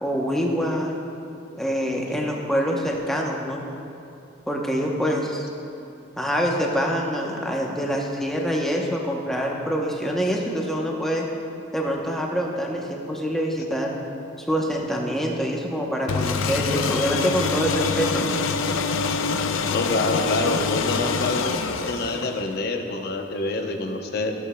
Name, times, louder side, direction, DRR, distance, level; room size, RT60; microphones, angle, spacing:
voice 1, 0.0-0.9 1.6-3.6 4.5-5.5 6.2-11.2 11.7-14.0 14.4-18.4, equal, ahead, -1 dB, 0.8 m, -25 dB
sound 1, 16.1-22.6, left 5 dB, 90° left, 0.5 m, -25 dB
voice 2, 19.7-21.6 21.9-24.3, left 2 dB, 55° left, 4 dB, 0.7 m, -26 dB
14.0 x 8.4 x 2.2 m, 2.6 s
head